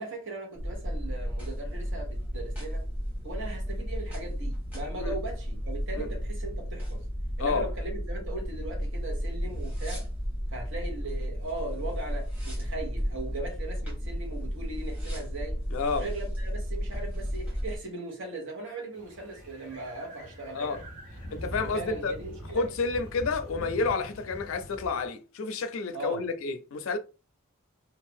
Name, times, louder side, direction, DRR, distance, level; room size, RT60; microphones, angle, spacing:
voice 1, 0.0-2.9 3.2-7.1 7.4-10.0 10.5-15.6 15.9-20.8 21.6-22.6 25.9-26.2, right 2 dB, 60° right, 1.1 m, -39 dB
sound 1, 0.5-17.8, equal, 5° right, 1.1 m, -33 dB
voice 2, 15.7-16.1 20.5-20.8 21.3-22.1 22.5-27.0, left 4 dB, 65° left, 0.4 m, -30 dB
sound 2, 18.9-25.1, equal, 85° right, 1.1 m, -43 dB
2.6 x 2.3 x 3.4 m
head